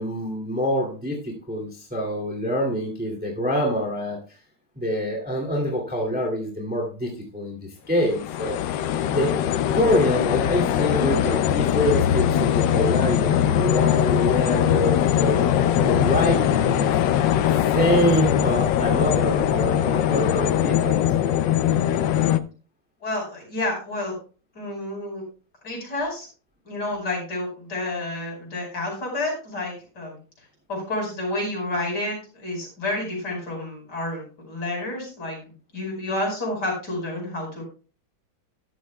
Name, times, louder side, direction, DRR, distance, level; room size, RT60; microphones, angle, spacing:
voice 1, 0.0-4.4 4.8-7.6 7.9-8.6 9.1-9.4 9.7-15.5 15.8-16.9 17.5-21.5, equal, 5° right, -1 dB, 2.3 m, -26 dB
sound 1, 8.0-22.4, left 10 dB, 70° left, 1.2 m, -21 dB
voice 2, 23.0-24.2 24.5-25.2 25.6-26.3 26.7-30.2 30.7-37.6, left 2 dB, 50° left, -1 dB, 5.5 m, -30 dB
13.0 x 12.0 x 2.3 m, 0.35 s
omnidirectional pair, 2.2 m